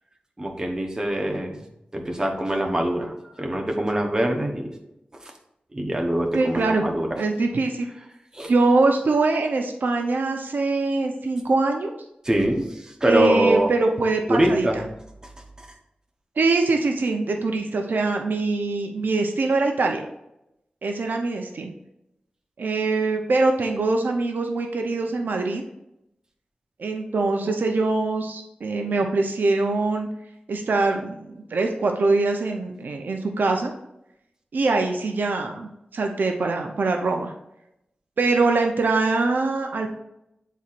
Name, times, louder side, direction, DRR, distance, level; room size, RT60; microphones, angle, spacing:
voice 1, 0.4-1.6 1.9-4.7 5.2-5.3 5.7-7.2 8.3-8.5 12.2-13.7 14.3-14.8 15.6-15.7, right 1 dB, 20° right, 1 dB, 0.9 m, -24 dB
voice 2, 6.3-6.8 7.2-7.9 8.5-11.9 13.1-14.7 16.4-20.1 20.8-21.7 22.6-25.6 26.8-30.1 30.5-33.7 34.5-37.3 38.2-39.9, right 3 dB, 85° right, 3 dB, 0.6 m, -23 dB
9.1 x 4.1 x 2.5 m, 0.84 s
wide cardioid pair, 105°, 3 cm